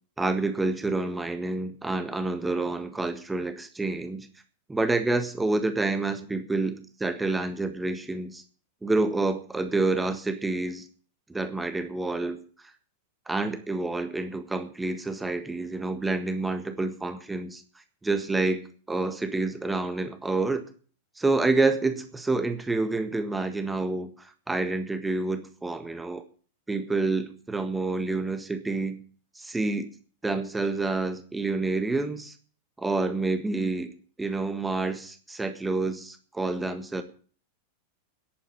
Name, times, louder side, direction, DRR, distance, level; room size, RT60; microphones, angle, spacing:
voice 1, 0.2-4.3 4.7-8.4 8.8-10.9 11.3-12.4 13.3-17.6 18.0-18.6 18.9-20.7 21.2-26.2 26.7-29.0 29.4-29.9 30.2-32.4 32.8-33.9 34.2-37.0, right 3 dB, 10° right, 9 dB, 1.6 m, -28 dB
10.5 x 9.3 x 9.6 m, 0.42 s
figure-of-eight pair, 90°, 0 cm